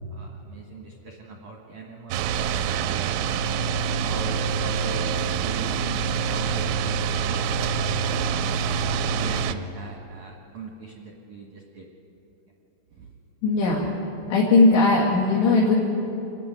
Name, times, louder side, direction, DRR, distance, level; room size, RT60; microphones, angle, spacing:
voice 1, 0.1-2.2 2.7-7.6 8.2-11.8 12.9-13.1, right 4 dB, 60° right, -1 dB, 2.0 m, -40 dB
sound 1, 2.1-9.5, right 6 dB, 90° right, 3.3 m, -26 dB
voice 2, 13.4-13.9 14.3-15.7, left 3 dB, 65° left, -3 dB, 3.9 m, -18 dB
27.0 x 11.5 x 9.3 m, 2.9 s
omnidirectional pair, 5.7 m